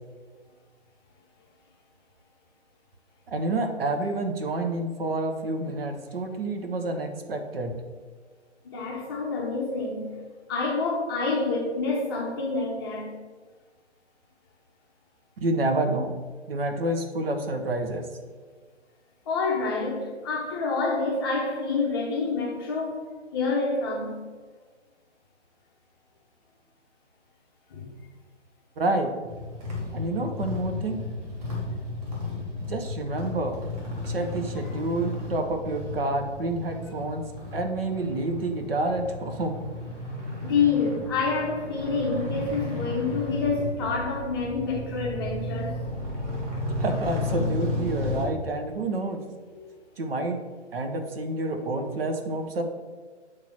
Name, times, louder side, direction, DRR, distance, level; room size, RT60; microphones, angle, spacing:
voice 1, 3.3-7.7 15.4-16.1 16.5-18.1 28.8-29.1 29.9-31.0 32.6-33.6 34.1-37.2 37.5-39.6 46.8-49.2 50.0-50.4 50.7-52.6, right 2 dB, 55° right, 0.9 m, -28 dB
voice 2, 8.6-10.2 10.5-13.2 19.3-24.2 27.7-27.9 34.6-34.8 40.4-45.8 49.6-49.7, left 4 dB, 20° left, 0.7 m, -28 dB
sound 1, 29.2-48.3, left 2 dB, 35° right, 1.7 m, -33 dB
6.8 x 3.3 x 5.7 m
figure-of-eight pair, 135°, 35 cm